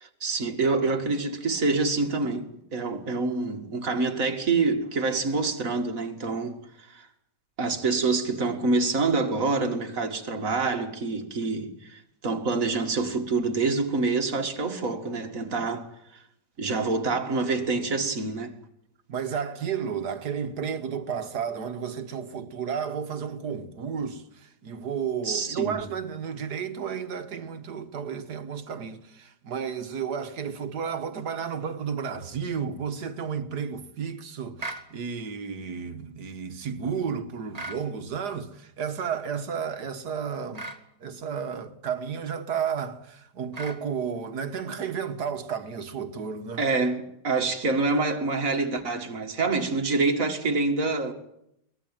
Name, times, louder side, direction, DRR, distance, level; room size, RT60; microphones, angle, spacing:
voice 1, 0.0-7.1 7.6-15.9 16.6-18.6 25.2-25.7 46.6-51.1, right 3 dB, 50° right, 2.4 m, -26 dB
voice 2, 19.1-40.7 41.0-46.7, right 7 dB, 70° right, 2.0 m, -32 dB
sound 1, 34.6-34.9 37.5-37.8 40.5-40.8 43.5-43.8, right 2 dB, 25° right, 1.6 m, -36 dB
23.0 x 19.5 x 9.1 m
omnidirectional pair, 1.8 m